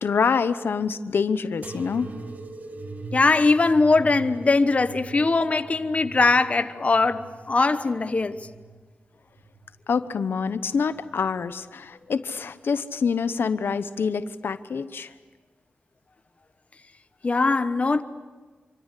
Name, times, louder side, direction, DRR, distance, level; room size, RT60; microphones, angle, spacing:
voice 1, 0.0-2.1 9.9-15.1, left 5 dB, 85° left, 1.0 m, -26 dB
sound 1, 1.6-8.8 9.4-10.1 10.9-11.4 12.4-12.5, right 3 dB, 50° right, 1.7 m, -42 dB
voice 2, 3.1-8.4 17.2-18.0, left 3 dB, 35° left, 1.1 m, -21 dB
26.5 x 25.5 x 8.4 m
wide cardioid pair, 120°, 4 cm